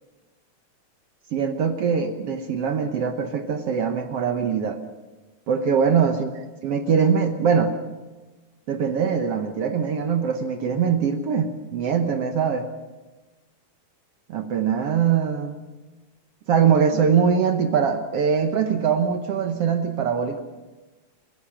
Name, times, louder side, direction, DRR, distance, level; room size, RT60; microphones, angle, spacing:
voice 1, 1.3-4.8 5.5-7.8 8.7-12.7 14.3-15.5 16.5-20.4, right 6 dB, 60° right, 6 dB, 1.7 m, -22 dB
29.5 x 16.5 x 5.9 m, 1.2 s
omnidirectional pair, 3.7 m